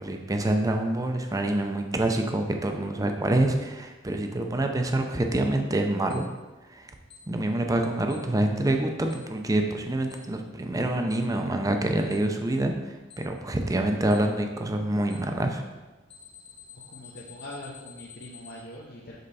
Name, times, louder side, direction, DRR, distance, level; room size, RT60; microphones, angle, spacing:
voice 1, 0.0-6.3 6.7-6.9 7.3-15.6, right 1 dB, 20° right, 4 dB, 0.5 m, -26 dB
Alarm, 6.1-6.2 7.1-7.2 8.1-8.2 9.1-9.2 10.1-10.2 11.1-11.2 12.1-12.2 13.1-13.2 14.1-14.2 15.1-15.2 16.1-18.5, left 9 dB, 30° left, 0.9 m, -48 dB
voice 2, 16.7-19.2, left 1 dB, 55° left, -4 dB, 0.8 m, -42 dB
5.3 x 4.4 x 4.1 m, 1.2 s
head